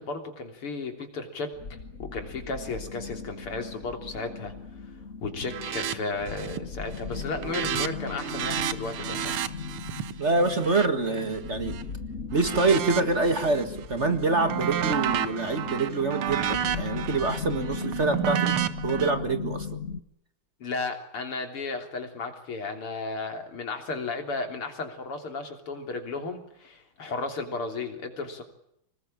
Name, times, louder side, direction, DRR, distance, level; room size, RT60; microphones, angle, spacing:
voice 1, 0.0-4.5 5.2-9.3 20.6-28.4, left 3 dB, 90° left, 5 dB, 4.3 m, -34 dB
sound 1, 1.5-20.0, left 5 dB, 40° left, 1.7 m, -38 dB
sound 2, 5.5-6.0 6.2-6.7 7.0-11.8 12.3-13.6 14.0-19.1, right 10 dB, 80° right, 2.1 m, -31 dB
voice 2, 10.2-11.8 12.3-19.8, right 3 dB, 35° right, 9 dB, 1.9 m, -26 dB
25.5 x 20.0 x 9.0 m, 0.74 s
omnidirectional pair, 2.4 m